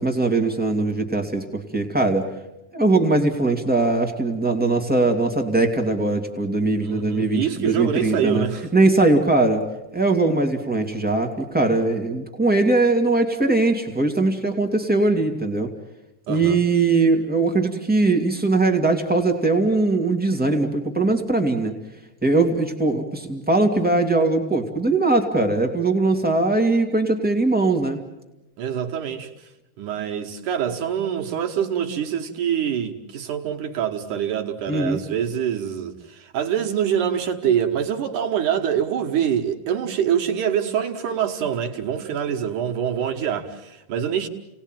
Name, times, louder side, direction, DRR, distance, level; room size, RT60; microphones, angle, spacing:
voice 1, 0.0-2.3 2.7-8.4 8.7-9.6 9.9-15.7 16.3-21.7 22.2-28.0 34.7-35.0, right 2 dB, 10° right, 0.5 m, -20 dB
voice 2, 6.8-8.7 16.3-16.6 28.6-29.3 29.8-44.3, right 9 dB, 60° right, 2.6 m, -25 dB
30.0 x 19.0 x 9.1 m
omnidirectional pair, 4.6 m